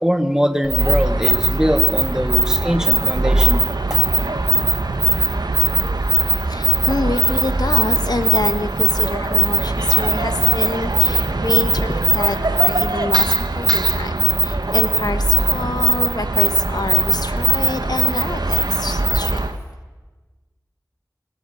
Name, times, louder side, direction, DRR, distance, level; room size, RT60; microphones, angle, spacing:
voice 1, 0.0-4.0, equal, 10° right, 6 dB, 2.3 m, -22 dB
sound 1, 0.6-19.6, right 2 dB, 85° right, 1.3 m, -19 dB
voice 2, 6.5-19.4, left 2 dB, 75° left, 9 dB, 1.5 m, -27 dB
25.0 x 24.0 x 7.2 m, 1.3 s
wide cardioid pair, 45°, 7 cm